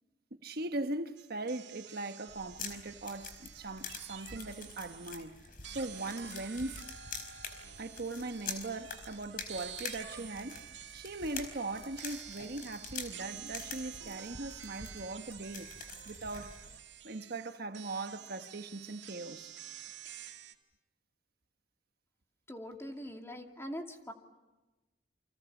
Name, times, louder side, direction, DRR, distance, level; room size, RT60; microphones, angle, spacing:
voice 1, 0.4-5.3 5.7-6.8 7.8-10.7 10.9-15.7 16.1-16.6 17.0-19.5, right 2 dB, 60° right, 1.3 m, -40 dB
sound 1, 1.2-5.3 5.6-20.5, right 9 dB, 80° right, 2.2 m, -49 dB
sound 2, 2.3-16.8, left 5 dB, 50° left, 4.7 m, -46 dB
voice 2, 22.5-24.1, equal, 15° left, 2.5 m, -42 dB
30.0 x 25.5 x 7.2 m
head